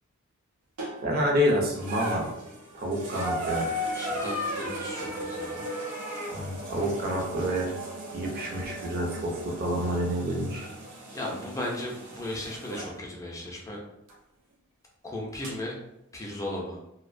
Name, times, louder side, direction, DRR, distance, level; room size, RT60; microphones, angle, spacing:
sound 1, 0.8-1.2 1.7-12.9 14.1-14.2 15.4-15.5, equal, 85° right, 0.6 m, -36 dB
voice 1, 1.0-2.3 2.7-3.7 6.3-7.7 8.1-10.7, equal, 40° right, -1 dB, 0.6 m, -28 dB
voice 2, 3.9-5.7 11.1-13.8 15.0-15.8 16.1-16.8, left 1 dB, 15° left, -2 dB, 0.4 m, -36 dB
2.4 x 2.1 x 2.5 m, 0.82 s
head